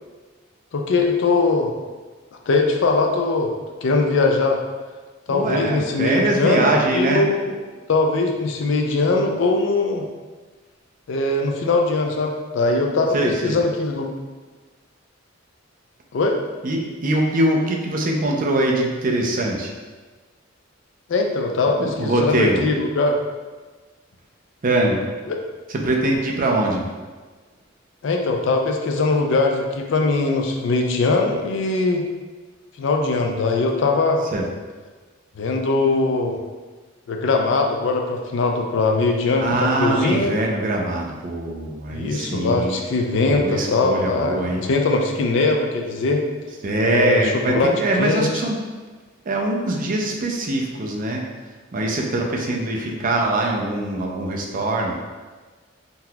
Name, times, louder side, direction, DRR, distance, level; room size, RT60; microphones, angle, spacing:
voice 1, 0.7-1.7 2.5-3.5 3.8-4.6 5.3-7.6 7.9-10.0 11.1-14.1 16.1-16.4 21.1-23.2 25.3-25.4 28.0-32.1 32.8-34.2 35.4-36.4 37.1-40.3 41.9-44.4 44.6-46.2 46.8-47.2 47.5-47.7 48.0-48.3, left 3 dB, 65° left, 3 dB, 0.4 m, -21 dB
voice 2, 5.3-7.2 13.1-13.6 16.6-19.7 21.6-22.6 24.6-25.0 25.7-26.9 34.3-34.4 39.3-42.8 43.3-44.6 46.6-48.6 49.3-51.3 51.7-54.9, right 1 dB, 40° right, 0 dB, 0.4 m, -22 dB
3.9 x 2.8 x 2.2 m, 1.3 s
head